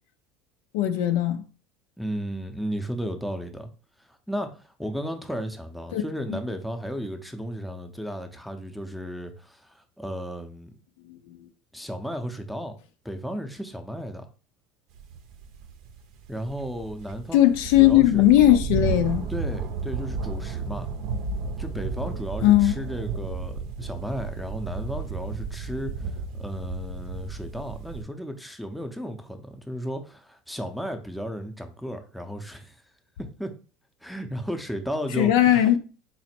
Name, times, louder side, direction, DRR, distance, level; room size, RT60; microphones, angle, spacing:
voice 1, 0.7-1.4 5.9-6.0 6.3-6.4 11.1-11.4 17.3-19.2 22.4-22.7 35.2-35.8, left 13 dB, 75° left, 0.5 m, -18 dB
voice 2, 2.0-3.7 4.3-10.7 11.7-12.7 13.0-14.3 16.3-17.5 17.8-18.3 19.3-20.9 21.6-26.0 26.3-32.8 33.2-33.5 34.0-35.7, equal, ahead, 0.6 m, -34 dB
sound 1, 14.9-28.0, right 4 dB, 65° right, 0.6 m, -33 dB
4.1 x 2.1 x 4.2 m
supercardioid pair, 105°, 0 cm